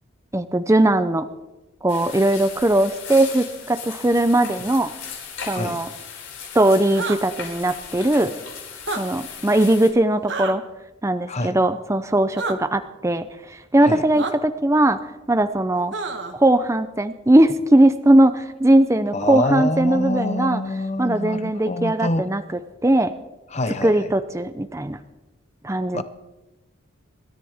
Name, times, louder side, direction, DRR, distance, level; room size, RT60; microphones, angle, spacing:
voice 1, 0.3-1.3 1.8-4.9 5.5-5.9 6.5-8.3 9.0-10.6 11.0-15.0 15.3-15.9 16.3-20.6 21.0-22.4 22.8-23.1 23.8-25.0 25.6-26.0, right 1 dB, 15° right, 0.5 m, -19 dB
sound 1, 1.9-9.9, left 7 dB, 65° left, 6.1 m, -37 dB
voice 2, 5.5-5.8 11.3-11.6 13.8-14.0 19.1-22.3 23.5-24.1 25.9-26.0, left 2 dB, 30° left, 0.8 m, -26 dB
sound 2, 6.9-7.2 8.8-9.0 10.3-10.5 12.4-12.6 14.2-14.3 15.9-16.3, right 3 dB, 55° right, 1.4 m, -28 dB
26.5 x 13.5 x 3.6 m
head